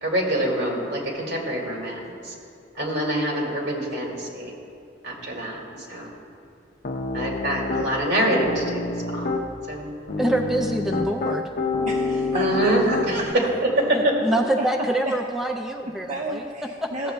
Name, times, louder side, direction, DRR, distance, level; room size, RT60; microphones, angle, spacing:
voice 1, 0.0-2.3 2.8-4.5 5.0-5.6 5.9-6.1 7.1-8.8 9.1-9.3 9.7-9.9 12.3-13.2 13.8-14.2, right 1 dB, 70° right, -2 dB, 1.9 m, -25 dB
Piano, 6.8-7.9 8.3-9.4 10.1-13.3, left 3 dB, 50° left, 0.6 m, -27 dB
voice 2, 10.2-11.5 13.9-16.5 16.8-16.9, right 1 dB, ahead, 2 dB, 0.3 m, -25 dB
voice 3, 11.9-13.3 14.3-14.7 15.0-15.1 16.1-17.1, right 2 dB, 45° right, -3 dB, 0.7 m, -31 dB
15.0 x 7.6 x 2.3 m, 2.5 s
head